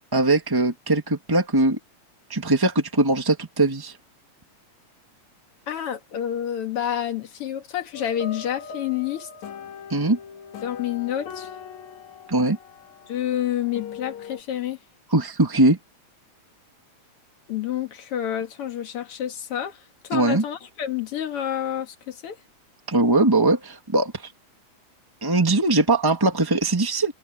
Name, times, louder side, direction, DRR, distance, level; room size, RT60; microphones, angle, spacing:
voice 1, 0.1-1.8 2.3-4.0 9.9-10.2 12.3-12.6 15.1-15.8 20.1-20.4 22.9-24.3 25.2-27.1, right 2 dB, 15° right, 0.9 m, -20 dB
voice 2, 5.7-9.3 10.6-11.5 13.1-14.8 17.5-22.4, left 10 dB, 55° left, 2.2 m, -29 dB
sound 1, 7.9-14.4, left 6 dB, 70° left, 2.9 m, -40 dB
omnidirectional pair, 3.5 m